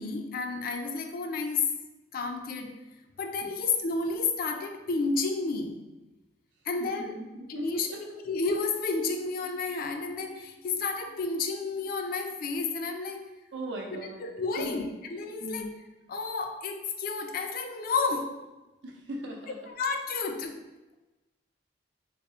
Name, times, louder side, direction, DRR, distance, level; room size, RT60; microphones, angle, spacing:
voice 1, 0.0-1.7 2.1-2.8 3.2-5.8 6.6-7.1 7.5-7.9 8.2-13.3 13.9-15.7 16.1-18.5 19.7-20.6, left 4 dB, 50° left, 5 dB, 0.3 m, -31 dB
voice 2, 6.8-8.0 13.5-14.2 14.6-14.9 15.4-15.7 18.8-19.5, right 1 dB, 90° right, 0 dB, 0.7 m, -38 dB
3.4 x 2.0 x 3.6 m, 1.1 s
head